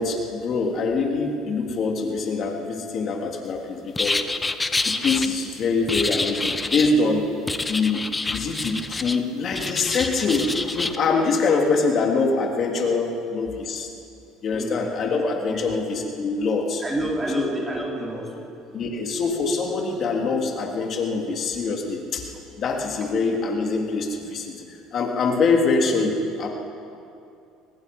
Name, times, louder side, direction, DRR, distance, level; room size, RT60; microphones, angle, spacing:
voice 1, 0.0-4.2 4.8-7.3 7.7-8.0 8.3-13.9 14.4-16.8 17.4-17.5 18.7-22.3 22.6-26.5, left 4 dB, 45° left, 1 dB, 3.3 m, -24 dB
sound 1, 3.9-5.3 5.9-6.9 7.5-9.2 9.5-11.0, left 3 dB, 15° left, 0.9 m, -27 dB
voice 2, 15.5-15.8 16.8-18.8, right 1 dB, 15° right, -2 dB, 4.5 m, -30 dB
24.5 x 19.5 x 5.6 m, 2.6 s
supercardioid pair, 100°, 0 cm